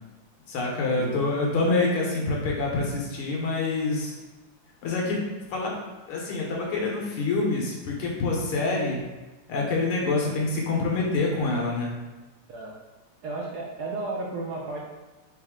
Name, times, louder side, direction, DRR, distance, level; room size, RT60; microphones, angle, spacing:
voice 1, 0.5-4.1 4.8-5.2 5.5-5.7 6.1-9.0 9.5-11.9, left 3 dB, 85° left, -2 dB, 1.9 m, -26 dB
voice 2, 13.2-14.8, right 3 dB, 70° right, -2 dB, 1.0 m, -33 dB
4.2 x 3.0 x 3.6 m, 1.1 s
omnidirectional pair, 2.3 m